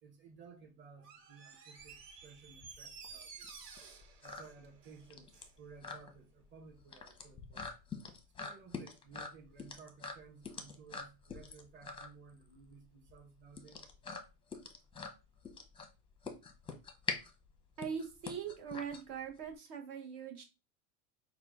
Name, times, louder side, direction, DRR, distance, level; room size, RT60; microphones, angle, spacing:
voice 1, 0.0-3.5 4.2-7.7 8.4-13.8, right 5 dB, 25° right, 1.1 m, -57 dB
Door, 1.0-5.6 5.9-6.0, right 6 dB, 85° right, 1.4 m, -53 dB
sound 1, 1.8-19.5, left 4 dB, 10° left, 0.6 m, -45 dB
voice 2, 17.8-20.4, right 7 dB, 50° right, 1.1 m, -41 dB
5.7 x 2.3 x 3.5 m
supercardioid pair, 125°, 47 cm